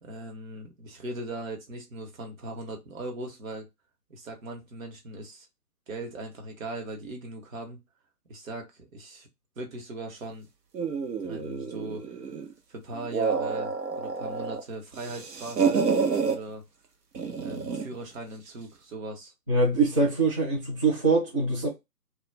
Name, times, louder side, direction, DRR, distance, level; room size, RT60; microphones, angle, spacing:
voice 1, 0.0-3.7 4.1-5.5 5.9-7.8 8.3-9.3 9.6-10.5 11.2-12.2 12.7-15.8 16.2-16.6 17.4-19.3, right 2 dB, 55° right, 1.1 m, -39 dB
sound 1, 10.7-12.5 12.9-14.6 14.9-16.4 17.2-17.9, right 5 dB, 85° right, 0.9 m, -28 dB
voice 2, 19.5-21.7, right 3 dB, 20° right, 0.6 m, -23 dB
2.3 x 2.1 x 3.2 m
hypercardioid pair, 150°, 47 cm